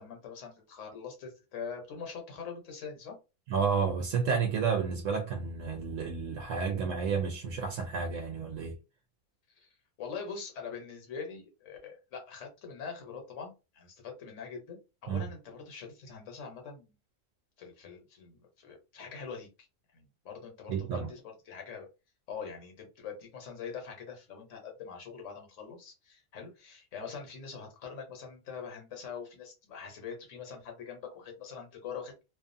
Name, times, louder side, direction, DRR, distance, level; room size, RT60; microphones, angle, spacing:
voice 1, 0.0-3.2 9.6-9.7 10.0-17.0 17.6-19.5 19.9-21.9 22.3-32.2, left 6 dB, 70° left, 1.2 m, -43 dB
voice 2, 3.5-8.8 15.1-15.3 20.7-21.1, right 5 dB, 75° right, 0.9 m, -31 dB
2.6 x 2.4 x 2.5 m
omnidirectional pair, 1.4 m